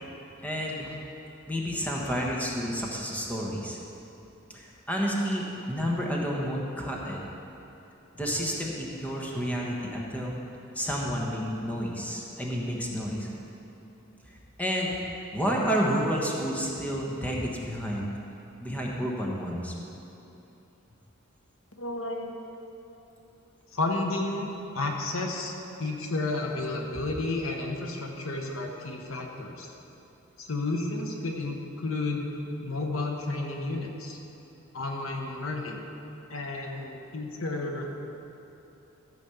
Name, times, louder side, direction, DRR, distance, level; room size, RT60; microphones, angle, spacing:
voice 1, 0.4-1.0 1.5-3.8 4.5-7.2 8.1-10.3 10.7-13.3 14.6-15.0 15.3-18.1 18.6-19.7, equal, 5° left, -2 dB, 1.2 m, -30 dB
voice 2, 21.7-22.4 23.7-25.5 25.8-29.7 30.4-32.3 32.6-34.2 34.7-35.8 36.3-37.9, left 2 dB, 70° left, 2 dB, 1.1 m, -32 dB
13.5 x 5.2 x 7.0 m, 3.0 s
head